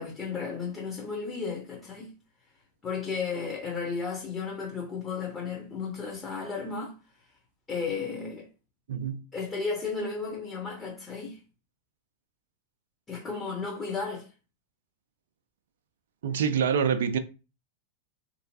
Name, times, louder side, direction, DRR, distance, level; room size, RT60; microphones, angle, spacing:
voice 1, 0.0-2.1 2.8-6.9 7.7-8.5 9.3-11.4 13.1-14.3, left 5 dB, 20° left, 0.9 m, -34 dB
voice 2, 8.9-9.2 16.2-17.2, right 7 dB, 60° right, 0.3 m, -26 dB
3.7 x 2.9 x 2.7 m
figure-of-eight pair, 90°, 0 cm